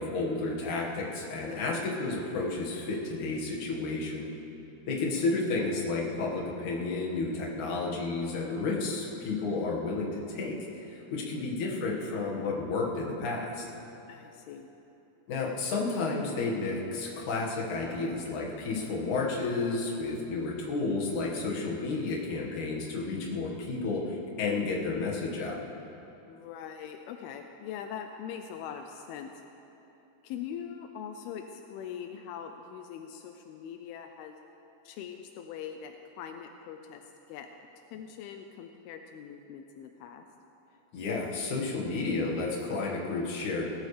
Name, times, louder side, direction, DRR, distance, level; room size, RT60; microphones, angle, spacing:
voice 1, 0.0-4.3 4.9-10.5 10.9-13.6 15.3-25.6 40.9-43.7, left 3 dB, 55° left, -3 dB, 2.5 m, -31 dB
voice 2, 1.5-1.8 11.2-11.5 14.1-14.7 19.9-20.5 26.3-29.3 30.2-34.4 34.8-37.0 37.3-40.3, left 8 dB, 85° left, 5 dB, 2.3 m, -42 dB
18.0 x 16.0 x 3.3 m, 3.0 s
omnidirectional pair, 5.0 m